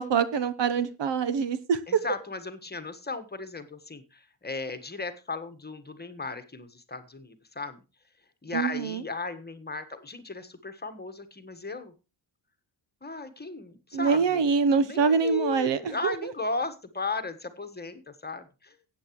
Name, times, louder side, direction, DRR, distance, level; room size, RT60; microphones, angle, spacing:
voice 1, 0.0-2.0 8.5-9.0 13.9-16.3, right 5 dB, 60° right, 14 dB, 1.1 m, -25 dB
voice 2, 1.9-7.8 8.4-11.9 13.0-14.4 14.8-18.7, left 3 dB, 20° left, 9 dB, 1.5 m, -36 dB
15.0 x 8.9 x 3.1 m, 0.30 s
cardioid pair, 90°, 48 cm